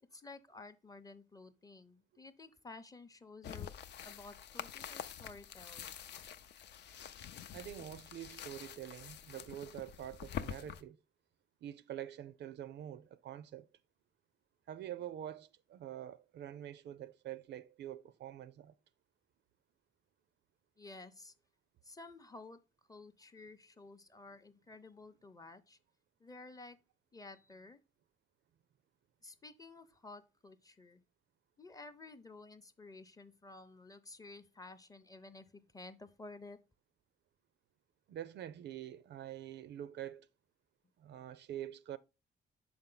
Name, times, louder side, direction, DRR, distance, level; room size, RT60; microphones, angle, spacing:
voice 1, 0.1-3.7 4.0-6.1 20.8-21.3 21.8-22.6 22.9-25.8 26.2-26.8 27.1-27.8 29.2-31.0 31.6-36.6, left 3 dB, 20° left, 0.6 m, -53 dB
sound 1, 3.4-10.8, left 9 dB, 60° left, 0.5 m, -46 dB
voice 2, 7.5-11.0 11.6-13.7 14.7-18.7 38.1-40.3 41.0-42.0, right 11 dB, 65° right, 0.4 m, -46 dB
6.3 x 4.4 x 3.8 m
cardioid pair, 90°, 20 cm